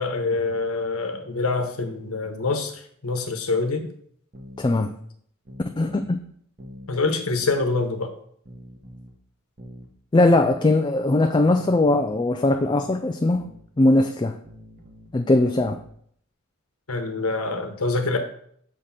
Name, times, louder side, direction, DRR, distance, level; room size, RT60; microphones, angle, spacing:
voice 1, 0.0-2.7 3.0-3.9 6.9-8.1 16.9-18.2, left 3 dB, 80° left, 5 dB, 1.1 m, -25 dB
sound 1, 4.3-4.7 5.4-6.2 6.6-6.9 7.3-7.7 8.4-9.2 9.6-9.9 10.3-10.7 11.5-12.1 12.6-12.9 13.3-13.6 14.4-15.1 15.6-15.9, equal, 40° right, 1.1 m, -44 dB
voice 2, 4.6-4.9 5.8-6.2 10.1-13.5 13.8-14.4 15.1-15.8, left 2 dB, 20° left, 5 dB, 0.3 m, -20 dB
6.5 x 3.7 x 5.7 m, 0.64 s
head